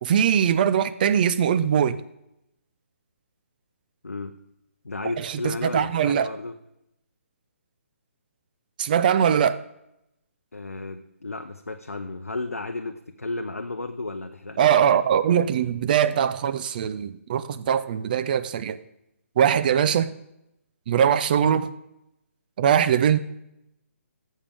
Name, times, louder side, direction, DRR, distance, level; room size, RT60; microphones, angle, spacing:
voice 1, 0.0-2.0 5.2-6.3 8.8-9.6 14.6-18.8 19.4-20.1 20.9-21.7 22.6-23.2, right 8 dB, 40° right, 0.5 m, -21 dB
voice 2, 4.0-4.4 4.8-6.5 10.5-14.7, left 2 dB, 90° left, 0.6 m, -33 dB
13.0 x 7.3 x 3.5 m
figure-of-eight pair, 140°, 8 cm